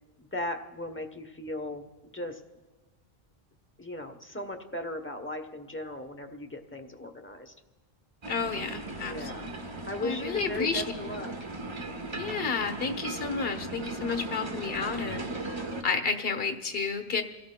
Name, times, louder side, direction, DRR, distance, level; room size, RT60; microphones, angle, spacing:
voice 1, 0.3-2.4 3.8-7.5 9.0-9.5 9.9-11.3, left 1 dB, 15° left, 5 dB, 0.8 m, -37 dB
sound 1, 8.2-15.8, right 2 dB, 30° right, 0.9 m, -37 dB
voice 2, 8.3-9.5 10.0-10.8 12.2-15.5 15.8-17.2, left 5 dB, 70° left, 7 dB, 1.3 m, -31 dB
28.5 x 17.0 x 2.2 m, 1.2 s
omnidirectional pair, 1.0 m